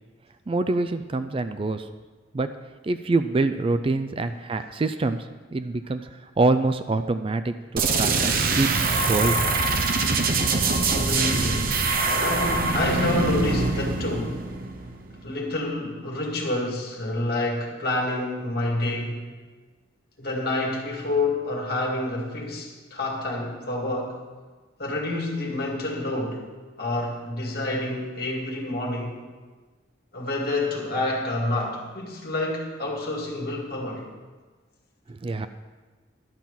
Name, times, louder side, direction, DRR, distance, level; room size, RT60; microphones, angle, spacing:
voice 1, 0.5-1.9 2.3-2.5 2.8-8.7 9.0-9.4 35.1-35.5, right 3 dB, 30° right, 10 dB, 0.3 m, -25 dB
sound 1, 7.8-15.3, right 3 dB, 50° right, 0.7 m, -24 dB
voice 2, 10.9-11.9 12.2-14.4 15.2-19.3 20.2-24.2 24.8-26.5 26.8-29.2 30.1-34.1, left 2 dB, 55° left, -1 dB, 2.1 m, -28 dB
11.5 x 5.9 x 7.1 m, 1.3 s
head